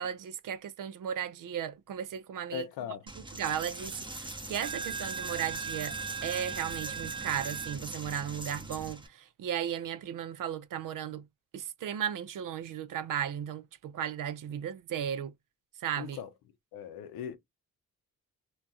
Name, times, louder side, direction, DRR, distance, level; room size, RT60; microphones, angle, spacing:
voice 1, 0.0-2.7 3.3-6.0 6.2-11.2 11.5-15.3 15.8-16.2, right 9 dB, 65° right, 0.5 m, -35 dB
voice 2, 2.5-3.1 16.0-16.3 16.7-17.4, left 9 dB, 90° left, 0.6 m, -39 dB
Coin (dropping), 3.1-9.1, right 4 dB, 15° right, 0.7 m, -38 dB
2.3 x 2.2 x 2.6 m
supercardioid pair, 50°, 35 cm